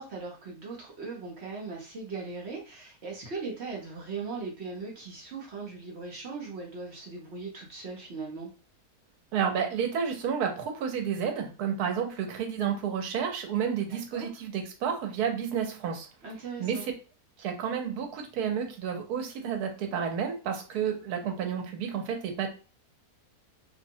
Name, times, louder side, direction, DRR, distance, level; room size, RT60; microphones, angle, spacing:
voice 1, 0.0-8.5 13.9-14.3 16.2-16.8, right 4 dB, 50° right, -2 dB, 1.0 m, -39 dB
voice 2, 9.3-16.1 16.6-16.9 17.4-22.5, right 7 dB, 80° right, 4 dB, 1.2 m, -31 dB
2.9 x 2.0 x 2.7 m, 0.35 s
omnidirectional pair, 1.6 m